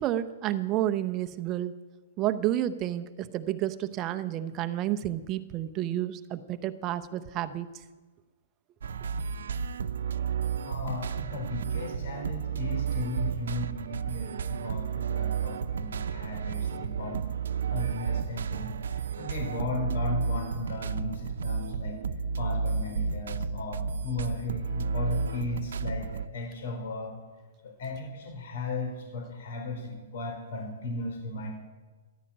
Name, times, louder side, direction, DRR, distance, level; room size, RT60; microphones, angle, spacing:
voice 1, 0.0-1.8 2.2-7.7, right 13 dB, 25° right, 10 dB, 0.8 m, -30 dB
sound 1, 8.8-26.3, right 5 dB, 80° right, 0.7 m, -32 dB
voice 2, 10.7-17.2 17.7-22.0 22.4-27.1 27.6-31.5, left 2 dB, 60° left, 2 dB, 4.1 m, -36 dB
14.5 x 11.5 x 8.7 m, 1.3 s
hypercardioid pair, 160°, 0 cm